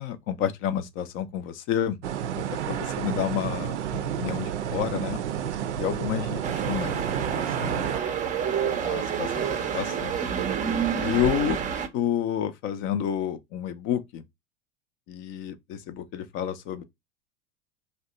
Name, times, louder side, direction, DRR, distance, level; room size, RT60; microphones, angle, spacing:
voice 1, 0.0-2.0 2.4-5.2 5.8-8.1 8.8-9.3 9.6-10.2 11.0-11.6 11.9-14.2 15.1-16.8, left 9 dB, 35° left, 0.4 m, -30 dB
sound 1, 2.0-8.0, right 9 dB, 75° right, 0.5 m, -30 dB
sound 2, 6.4-11.9, right 7 dB, 20° right, 0.5 m, -28 dB
2.7 x 2.2 x 3.7 m
figure-of-eight pair, 80°, 35 cm